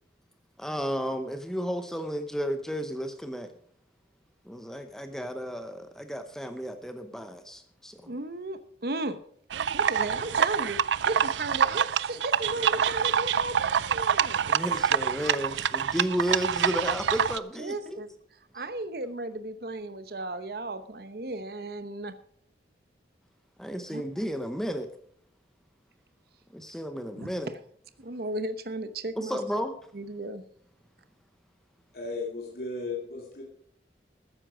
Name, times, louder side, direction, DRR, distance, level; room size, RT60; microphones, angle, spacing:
voice 1, 0.6-3.5 4.4-8.1 14.5-18.0 23.6-24.9 26.5-27.5 29.2-29.7, equal, 5° left, 8 dB, 0.8 m, -33 dB
voice 2, 8.1-9.2 9.7-10.8 11.0-14.5 17.6-18.1 18.5-22.1 23.9-24.0 27.1-27.3 28.0-29.4 29.9-30.4, right 2 dB, 60° right, 11 dB, 0.9 m, -35 dB
sound 1, 9.5-17.4, right 8 dB, 85° right, 0.4 m, -26 dB
voice 3, 31.9-33.4, left 3 dB, 60° left, -1 dB, 2.6 m, -35 dB
14.0 x 9.9 x 5.0 m, 0.65 s
head